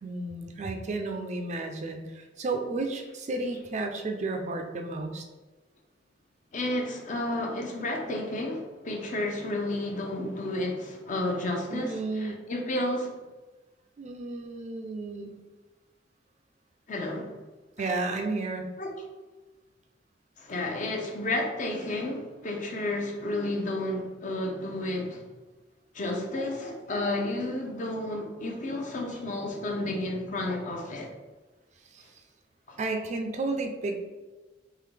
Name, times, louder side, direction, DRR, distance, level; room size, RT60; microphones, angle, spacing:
voice 1, 0.0-5.2 11.7-12.5 14.0-15.4 17.8-18.7 31.9-32.1 32.8-33.9, right 3 dB, 40° right, 0.4 m, -32 dB
voice 2, 6.5-13.2 16.9-17.3 17.8-17.9 18.8-18.9 20.4-25.2 25.9-31.1 32.7-32.8, left 1 dB, 45° left, 0.6 m, -31 dB
3.7 x 3.0 x 3.3 m
head